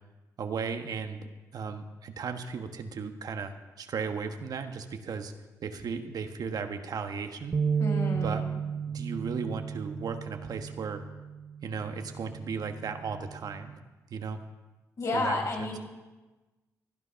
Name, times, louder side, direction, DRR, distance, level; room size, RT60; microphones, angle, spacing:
voice 1, 0.4-5.3 5.6-7.6 8.1-8.4 8.9-11.0 11.6-13.7 14.1-14.4 15.1-15.7, right 5 dB, 65° right, 7 dB, 1.3 m, -36 dB
sound 1, 7.5-13.8, right 6 dB, 45° right, 0.7 m, -34 dB
voice 2, 7.8-8.5 15.0-15.8, left 2 dB, 55° left, 0 dB, 5.2 m, -31 dB
17.0 x 9.8 x 5.8 m, 1.2 s
supercardioid pair, 55°, 7 cm